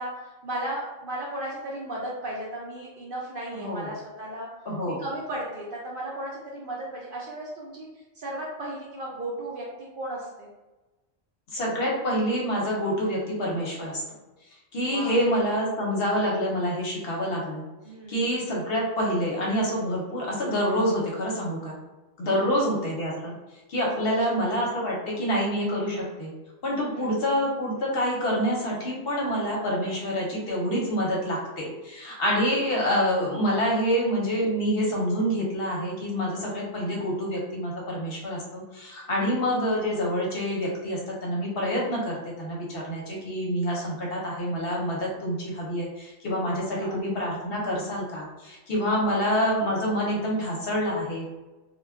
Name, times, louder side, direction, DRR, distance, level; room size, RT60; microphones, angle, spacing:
voice 1, 0.0-4.5 4.8-7.9 8.2-10.5 14.9-15.1 17.8-18.5 22.2-22.6 24.0-24.2 26.9-27.2 36.9-37.1 39.2-39.3 46.8-47.0 48.9-49.2, right 1 dB, 60° right, -4 dB, 0.6 m, -35 dB
voice 2, 3.5-3.9 4.7-5.0 11.5-14.0 14.7-17.6 18.1-21.8 22.2-23.3 23.7-26.3 26.6-51.3, equal, 55° left, -3 dB, 0.8 m, -27 dB
2.3 x 2.1 x 3.4 m, 1.1 s
omnidirectional pair, 1.3 m